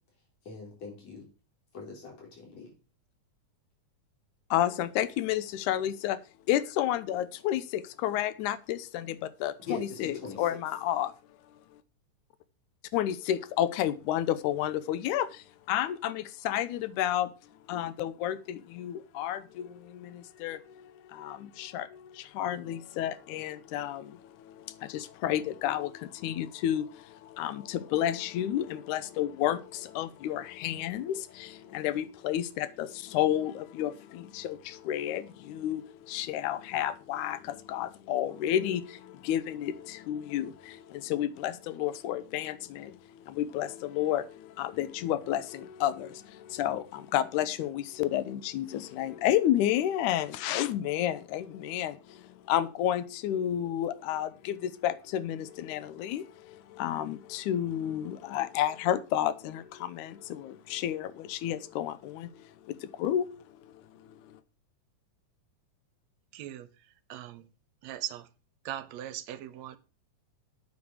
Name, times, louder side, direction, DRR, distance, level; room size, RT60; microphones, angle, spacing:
voice 1, 0.4-1.3 1.7-2.7 9.7-10.4, left 4 dB, 55° left, 5.2 m, -41 dB
voice 2, 4.5-6.2 6.5-11.1 12.9-17.3 17.7-63.3 63.6-64.4, left 11 dB, 80° left, 2.2 m, -31 dB
voice 3, 66.3-66.7 67.1-67.5 67.8-68.3 68.6-69.8, right 12 dB, 70° right, 1.8 m, -39 dB
9.0 x 7.2 x 6.4 m
omnidirectional pair, 3.6 m